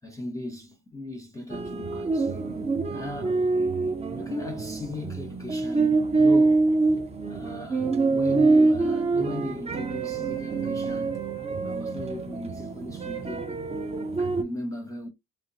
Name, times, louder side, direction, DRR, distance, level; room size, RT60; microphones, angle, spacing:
voice 1, 0.0-2.3 2.9-3.4 4.1-6.7 7.3-11.2 11.6-13.6 14.2-15.1, left 1 dB, 5° left, 0.8 m, -37 dB
sound 1, 1.5-14.4, right 3 dB, 15° right, 0.4 m, -25 dB
2.6 x 2.1 x 2.7 m
hypercardioid pair, 45°, 47 cm